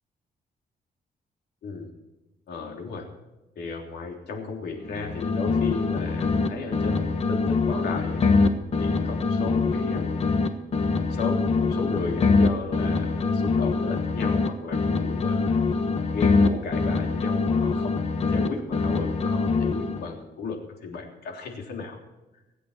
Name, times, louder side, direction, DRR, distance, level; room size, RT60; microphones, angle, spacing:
voice 1, 2.5-3.1 3.5-8.2 8.8-10.2 11.0-15.6 16.1-22.0, left 4 dB, 85° left, 2 dB, 3.4 m, -34 dB
sound 1, 4.8-6.5 6.7-10.5 10.7-14.5 14.7-18.5 18.7-20.1, left 4 dB, 40° left, 1.3 m, -24 dB
25.5 x 8.5 x 4.4 m, 1.0 s
cardioid pair, 150°, 16 cm